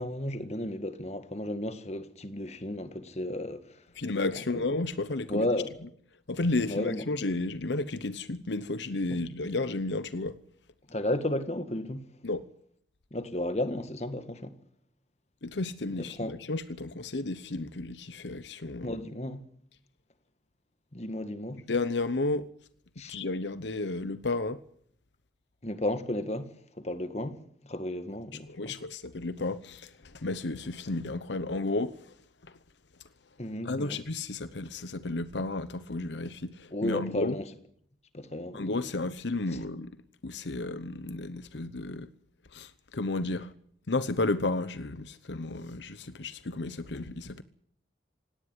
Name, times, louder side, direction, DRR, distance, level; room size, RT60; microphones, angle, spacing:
voice 1, 0.0-3.8 4.5-4.7 5.3-5.7 6.7-7.0 9.1-9.2 10.9-12.1 13.1-14.6 16.0-16.4 18.8-19.5 20.9-21.6 23.0-23.2 25.6-28.8 33.4-34.0 36.7-37.5 38.1-38.6, left 1 dB, 35° left, 1.7 m, -33 dB
voice 2, 4.0-5.5 6.3-10.4 12.2-12.5 15.4-19.0 21.7-22.5 23.1-24.6 28.5-32.1 32.5-32.6 33.6-37.4 38.5-39.9 40.2-42.1 42.5-43.5 43.9-47.4, left 2 dB, 75° left, 0.9 m, -32 dB
18.0 x 17.5 x 9.6 m
head